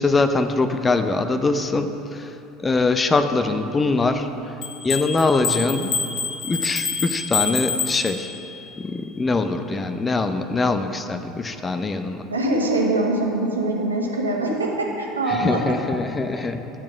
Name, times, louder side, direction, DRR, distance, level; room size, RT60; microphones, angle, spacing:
voice 1, 0.0-2.3 2.6-4.3 4.8-6.0 6.4-8.3 8.8-12.3 15.3-16.7, left 3 dB, 20° left, 9 dB, 0.6 m, -23 dB
sound 1, 4.6-8.6, left 5 dB, 45° left, 1.1 m, -27 dB
voice 2, 12.3-15.6, right 2 dB, 80° right, -1 dB, 1.4 m, -23 dB
10.5 x 6.9 x 6.1 m, 2.8 s
figure-of-eight pair, 70°, 0 cm